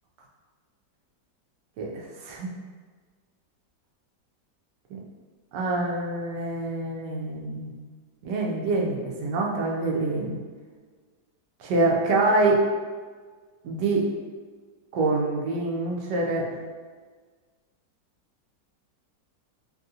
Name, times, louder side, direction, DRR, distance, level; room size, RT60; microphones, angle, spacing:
voice 1, 1.8-2.5 4.9-5.0 5.5-7.7 8.2-10.4 11.6-12.6 13.6-14.0 14.9-16.5, right 2 dB, 85° right, -1 dB, 1.2 m, -25 dB
3.4 x 2.4 x 2.7 m, 1.5 s
omnidirectional pair, 1.8 m